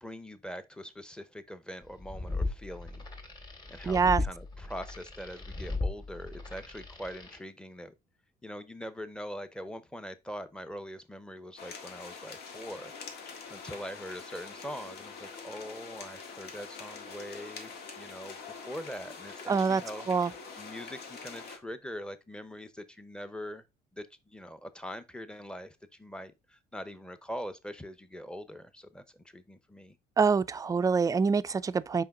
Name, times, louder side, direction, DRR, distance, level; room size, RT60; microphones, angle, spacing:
voice 1, 0.0-3.1 3.7-7.9 8.4-23.6 23.9-30.0, equal, 5° left, 0.8 m, -43 dB
sound 1, 1.9-7.4, left 2 dB, 25° left, 2.0 m, -37 dB
voice 2, 3.8-4.2 19.5-19.8 20.1-20.3 30.2-32.0, right 5 dB, 20° right, 0.4 m, -25 dB
sound 2, 11.6-21.6, left 5 dB, 70° left, 1.6 m, -45 dB
5.6 x 4.7 x 3.7 m
cardioid pair, 110°, 17 cm